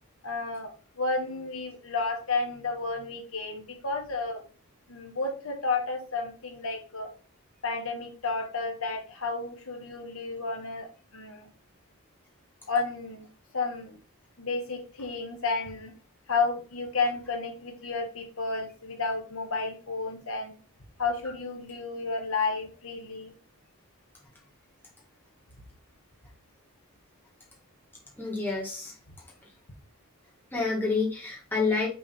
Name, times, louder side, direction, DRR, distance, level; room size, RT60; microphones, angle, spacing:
voice 1, 0.2-4.4 4.9-7.1 7.6-10.9 11.1-11.5 12.7-13.3 13.5-14.0 14.4-15.9 16.3-20.5 21.0-23.3, left 3 dB, 75° left, 3 dB, 1.4 m, -31 dB
voice 2, 28.2-28.9 30.5-31.9, left 4 dB, 10° left, -3 dB, 1.7 m, -28 dB
6.2 x 3.5 x 4.4 m, 0.37 s
head